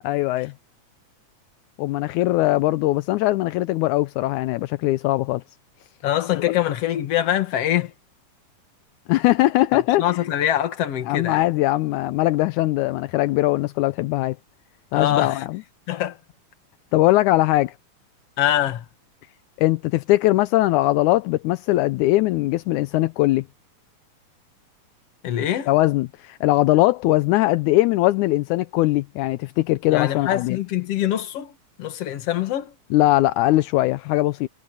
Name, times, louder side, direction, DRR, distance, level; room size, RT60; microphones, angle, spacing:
voice 1, 0.0-0.5 1.8-5.4 6.4-6.5 9.1-10.2 11.1-14.4 14.9-15.6 16.9-17.7 19.6-23.4 25.7-30.6 32.9-34.5, left 17 dB, 80° left, 2.0 m, -20 dB
voice 2, 6.0-7.9 10.0-11.5 14.9-15.4 15.9-16.2 18.4-18.9 25.2-25.7 29.9-31.5 31.8-32.7, left 12 dB, 55° left, 2.4 m, -24 dB
omnidirectional pair, 3.5 m